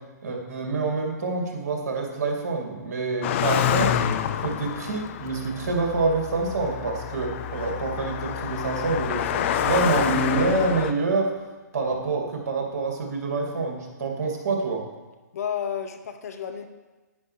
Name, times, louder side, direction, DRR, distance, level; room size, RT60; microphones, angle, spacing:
voice 1, 0.2-4.0 4.4-11.3 11.7-14.8, right 3 dB, 55° right, 0 dB, 2.4 m, -27 dB
Car passing by, 3.2-10.9, left 9 dB, 40° left, 0.6 m, -27 dB
voice 2, 15.3-16.7, left 8 dB, 60° left, 7 dB, 1.0 m, -31 dB
10.5 x 9.4 x 3.3 m, 1.2 s
figure-of-eight pair, 130°, 10 cm